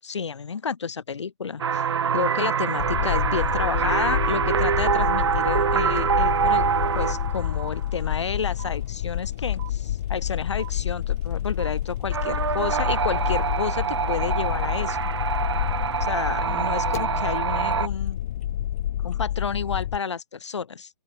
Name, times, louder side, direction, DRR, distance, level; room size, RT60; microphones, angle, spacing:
voice 1, 0.0-1.8 2.1-6.7 6.9-15.1 16.0-18.2 19.0-20.9, left 6 dB, 75° left, 6.7 m, -30 dB
sound 1, 1.6-7.8 12.1-17.9, right 7 dB, 65° right, 0.8 m, -25 dB
sound 2, 2.8-20.0, left 12 dB, 30° left, 1.9 m, -28 dB
sound 3, 6.0-6.1 6.3-17.4, right 40 dB or more, 20° right, 3.6 m, -47 dB
open air
hypercardioid pair, 170°, 15 cm